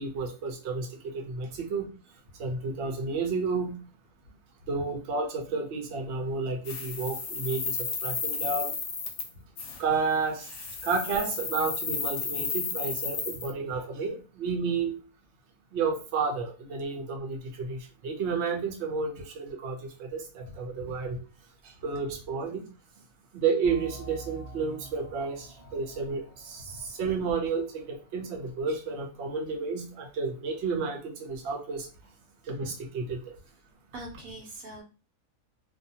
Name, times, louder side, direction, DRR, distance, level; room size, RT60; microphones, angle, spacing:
voice 1, 0.0-1.9 2.4-3.7 4.7-8.7 9.8-10.5 10.8-15.0 15.7-21.2 21.6-22.6 23.3-31.9 32.5-33.4, right 4 dB, 60° right, 2 dB, 0.9 m, -31 dB
sound 1, 6.7-9.3 9.6-9.8 10.4-13.5, left 5 dB, 65° left, 0.9 m, -33 dB
voice 2, 20.4-21.1 26.7-26.8 33.1-33.2 33.9-34.8, equal, 80° right, 2 dB, 1.2 m, -43 dB
sound 2, 23.6-28.9, right 1 dB, 25° right, 0.6 m, -47 dB
2.6 x 2.3 x 2.7 m, 0.34 s
omnidirectional pair, 1.5 m